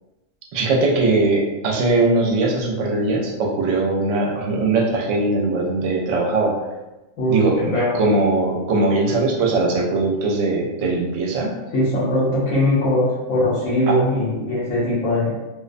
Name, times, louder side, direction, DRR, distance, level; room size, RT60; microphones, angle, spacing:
voice 1, 0.5-6.5 7.3-11.5 13.9-14.0, right 2 dB, 70° right, -1 dB, 0.9 m, -20 dB
voice 2, 7.2-8.0 11.7-15.3, left 1 dB, 80° left, -8 dB, 1.1 m, -20 dB
2.5 x 2.1 x 2.5 m, 1.1 s
omnidirectional pair, 1.4 m